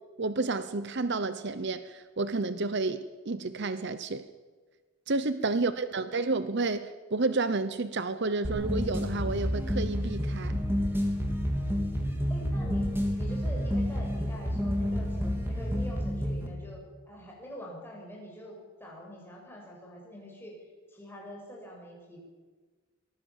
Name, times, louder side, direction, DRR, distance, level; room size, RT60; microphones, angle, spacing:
voice 1, 0.2-4.2 5.1-10.6, right 3 dB, 50° right, 12 dB, 0.8 m, -30 dB
voice 2, 5.5-6.3 12.3-20.5 20.9-22.2, equal, 10° left, -2 dB, 6.7 m, -45 dB
sound 1, 8.4-16.5, equal, 10° right, 3.2 m, -29 dB
24.0 x 19.0 x 7.3 m, 1.4 s
head